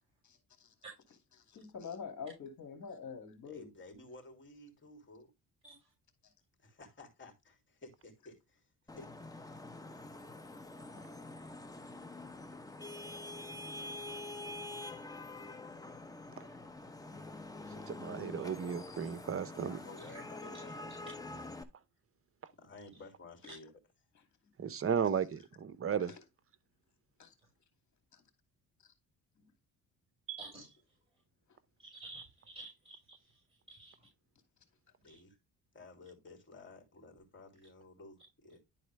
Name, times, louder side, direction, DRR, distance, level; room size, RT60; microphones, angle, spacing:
voice 1, 1.5-3.7 27.2-27.3, left 6 dB, 50° left, 2.5 m, -44 dB
voice 2, 3.4-5.3 6.6-8.6 8.9-9.1 9.4-9.5 19.3-21.5 22.6-23.7 35.0-35.4 35.7-38.6, left 3 dB, 30° left, 3.2 m, -54 dB
Vehicle horn car horn honking / Traffic noise roadway noise, 8.9-21.6, left 2 dB, 10° left, 0.9 m, -46 dB
voice 3, 17.9-19.8 24.6-26.1 30.3-30.4, right 7 dB, 35° right, 0.8 m, -34 dB
voice 4, 30.4-30.8 31.8-33.4 33.7-33.9 35.1-35.2, right 2 dB, 15° right, 5.4 m, -52 dB
11.0 x 4.1 x 3.4 m
cardioid pair, 85°, 36 cm